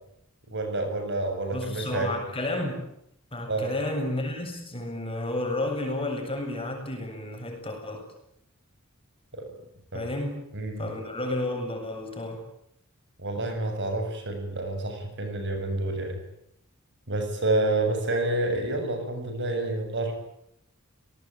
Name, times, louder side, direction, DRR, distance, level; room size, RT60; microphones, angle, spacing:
voice 1, 0.5-2.1 3.5-3.7 9.3-9.5 9.9-10.1 10.5-10.9 13.2-16.2 17.1-20.1, right 2 dB, 60° right, 6 dB, 7.2 m, -28 dB
voice 2, 1.5-2.9 3.3-8.1 9.9-10.5 10.8-12.4, left 1 dB, 25° left, 3 dB, 7.8 m, -31 dB
29.0 x 19.5 x 9.2 m, 0.76 s
head